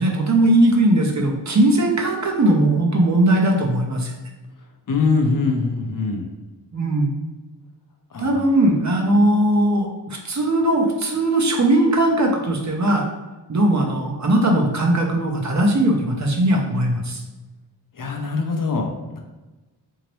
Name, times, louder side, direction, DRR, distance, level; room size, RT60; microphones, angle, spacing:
voice 1, 0.0-4.1 6.7-7.1 8.2-13.1 13.5-17.2, right 1 dB, 40° right, 0 dB, 0.8 m, -19 dB
voice 2, 4.9-6.3 8.1-8.5 17.9-19.2, left 4 dB, 45° left, 2 dB, 0.7 m, -23 dB
2.8 x 2.8 x 3.1 m, 1.2 s
supercardioid pair, 40°, 45 cm